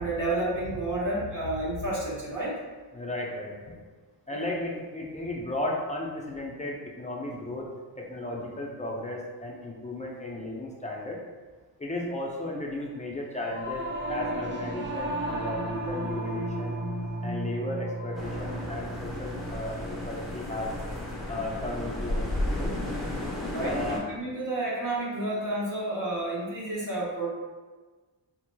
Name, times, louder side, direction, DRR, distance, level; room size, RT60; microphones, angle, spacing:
voice 1, 0.0-2.5 4.3-4.4 23.5-27.3, right 1 dB, 45° right, -6 dB, 1.2 m, -30 dB
voice 2, 2.9-3.8 4.3-7.7 8.0-11.2 11.8-16.8 17.2-20.7 21.3-22.7 23.6-24.0, left 1 dB, 15° left, -2 dB, 0.5 m, -35 dB
Singing / Musical instrument, 13.4-23.0, right 1 dB, 25° right, 0.6 m, -35 dB
sound 1, 18.1-24.0, left 1 dB, ahead, 0.9 m, -33 dB
4.5 x 2.9 x 2.2 m, 1.3 s
wide cardioid pair, 100°, 43 cm